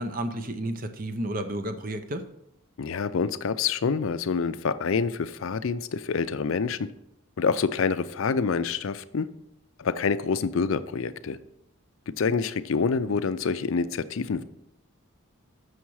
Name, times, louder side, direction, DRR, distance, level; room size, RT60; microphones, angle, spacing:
voice 1, 0.0-2.2, right 1 dB, 40° right, 9 dB, 0.6 m, -31 dB
voice 2, 2.8-6.9 7.4-9.3 9.8-11.4 12.2-14.4, left 5 dB, 70° left, 13 dB, 0.4 m, -27 dB
7.3 x 6.4 x 4.7 m, 0.83 s
head